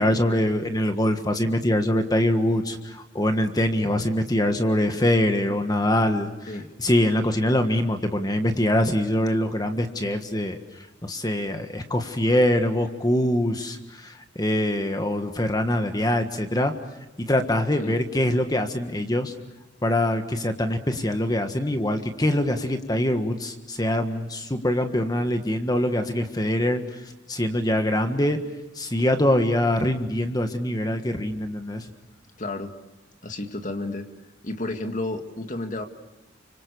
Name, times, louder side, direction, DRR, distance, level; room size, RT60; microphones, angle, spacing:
voice 1, 0.0-6.5 6.8-16.7 17.2-19.3 19.8-26.8 27.3-28.4 28.7-31.9, left 1 dB, 20° left, 6 dB, 1.5 m, -24 dB
voice 2, 32.4-32.7 33.2-34.1 34.4-35.8, left 2 dB, 40° left, 5 dB, 2.1 m, -31 dB
30.0 x 25.5 x 6.9 m, 1.0 s
head